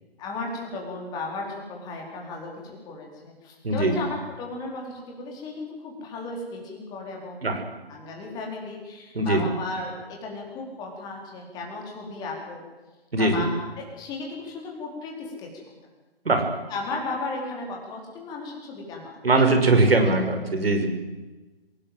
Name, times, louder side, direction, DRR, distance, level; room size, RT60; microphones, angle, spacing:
voice 1, 0.2-7.5 7.9-12.6 13.2-15.5 16.7-19.1 19.9-20.1, left 3 dB, 15° left, 0 dB, 4.5 m, -35 dB
voice 2, 3.6-3.9 7.4-7.6 9.1-9.5 13.1-13.5 16.3-16.4 19.2-20.9, right 2 dB, 70° right, 6 dB, 5.8 m, -21 dB
27.0 x 18.5 x 7.9 m, 1.2 s
figure-of-eight pair, 155°, 31 cm